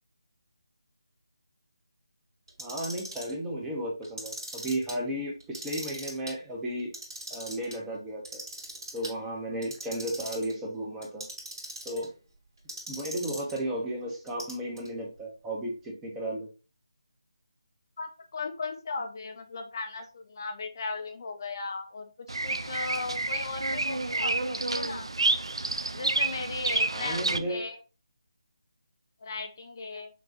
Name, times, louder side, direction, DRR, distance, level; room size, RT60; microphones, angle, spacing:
Clock, 2.5-3.3 4.0-4.9 5.4-6.3 6.8-7.7 8.3-9.1 9.6-10.5 11.0-12.1 12.7-13.6 14.3-14.9, right 2 dB, 45° right, 2.3 m, -40 dB
voice 1, 2.6-6.9 7.3-8.4 8.9-11.3 11.8-12.1 12.9-16.5 26.9-27.7, right 1 dB, 10° right, -2 dB, 0.8 m, -34 dB
voice 2, 18.0-25.1 25.9-27.8 29.2-30.1, left 4 dB, 45° left, 5 dB, 0.5 m, -37 dB
Bird vocalization bird call bird song, 22.3-27.4, right 3 dB, 70° right, 0.4 m, -29 dB
6.0 x 2.3 x 2.8 m, 0.33 s
figure-of-eight pair, 155°, 3 cm